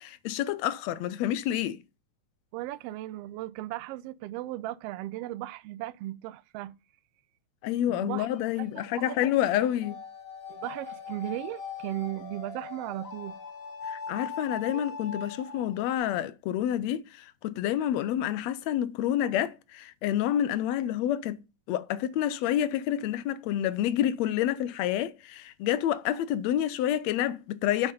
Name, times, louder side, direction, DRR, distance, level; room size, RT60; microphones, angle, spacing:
voice 1, 0.0-1.8 7.6-10.0 13.9-27.9, left 11 dB, 75° left, 1.8 m, -28 dB
voice 2, 2.5-6.7 7.9-8.3 8.6-9.2 10.5-13.4 14.7-14.8, right 16 dB, 80° right, 1.4 m, -36 dB
sound 1, 8.3-16.0, left 5 dB, 35° left, 1.0 m, -41 dB
7.7 x 4.8 x 5.4 m
omnidirectional pair, 3.3 m